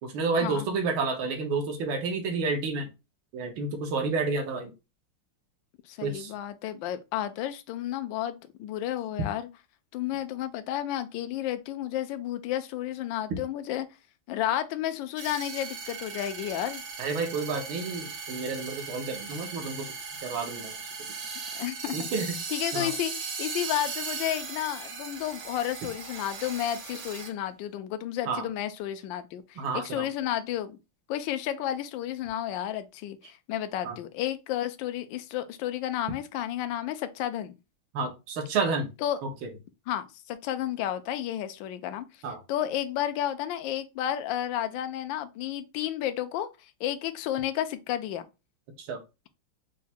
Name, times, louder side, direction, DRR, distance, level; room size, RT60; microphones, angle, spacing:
voice 1, 0.0-2.9 3.3-4.7 6.0-6.3 17.0-19.9 20.2-20.7 21.9-22.3 22.7-22.9 28.3-28.5 29.6-30.0 33.8-34.0 37.9-38.9 39.2-39.5 42.2-42.4 48.8-49.0, right 4 dB, 80° right, 1.8 m, -30 dB
voice 2, 5.9-9.5 9.9-13.9 14.3-16.8 21.6-22.1 22.5-30.8 31.1-37.6 39.0-39.2 39.9-42.1 42.5-46.5 46.8-48.2, left 12 dB, 75° left, 1.2 m, -32 dB
sound 1, 15.2-27.3, right 5 dB, 60° right, 1.5 m, -38 dB
4.7 x 2.2 x 4.1 m
omnidirectional pair, 2.3 m